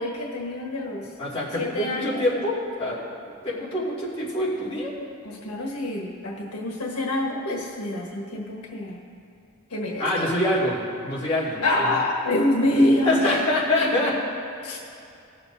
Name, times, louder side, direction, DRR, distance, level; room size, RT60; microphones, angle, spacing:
voice 1, 0.0-1.1 1.6-2.4 5.2-9.0 9.7-10.2 11.6-13.4 13.8-13.9 14.6-14.8, left 1 dB, 85° left, -2 dB, 1.4 m, -26 dB
voice 2, 1.2-3.0 3.4-4.9 10.0-10.8 11.0-11.6 13.0-14.1, left 1 dB, 25° left, -9 dB, 2.5 m, -25 dB
18.5 x 7.0 x 2.7 m, 2.6 s
head